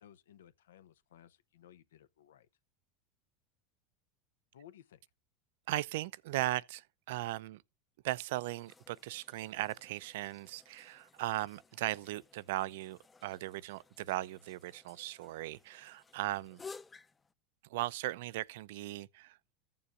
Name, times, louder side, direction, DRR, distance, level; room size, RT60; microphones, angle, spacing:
voice 1, 0.0-2.5 4.5-5.0, left 10 dB, 90° left, 0.8 m, -58 dB
voice 2, 5.7-7.6 8.0-16.6 17.7-19.5, right 17 dB, 75° right, 0.5 m, -38 dB
sound 1, 8.4-17.3, left 4 dB, 20° left, 0.6 m, -56 dB
15.0 x 7.0 x 2.5 m
hypercardioid pair, 105°, 0 cm